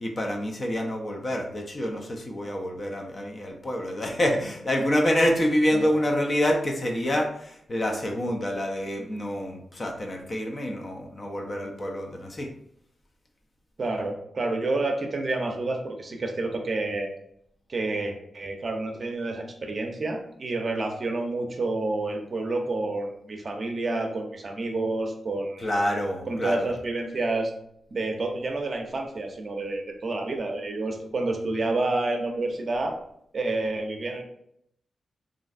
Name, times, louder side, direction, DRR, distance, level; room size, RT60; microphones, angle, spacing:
voice 1, 0.0-12.5 25.6-26.7, equal, 40° left, 2 dB, 0.5 m, -27 dB
voice 2, 13.8-17.1 17.7-25.7 26.3-27.5 27.9-32.9 33.3-34.2, right 2 dB, 50° right, 3 dB, 0.5 m, -29 dB
3.1 x 2.5 x 2.5 m, 0.71 s
cardioid pair, 90°, 0 cm